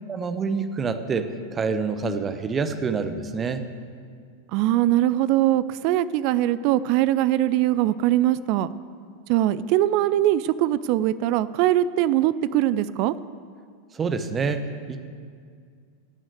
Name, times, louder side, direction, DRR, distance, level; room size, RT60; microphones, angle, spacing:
voice 1, 0.1-3.6 13.9-15.0, right 5 dB, 20° right, 10 dB, 1.0 m, -27 dB
voice 2, 4.5-8.7 9.3-13.1, right 13 dB, 45° right, 17 dB, 0.4 m, -21 dB
15.5 x 6.3 x 8.1 m, 2.1 s
figure-of-eight pair, 90°, 0 cm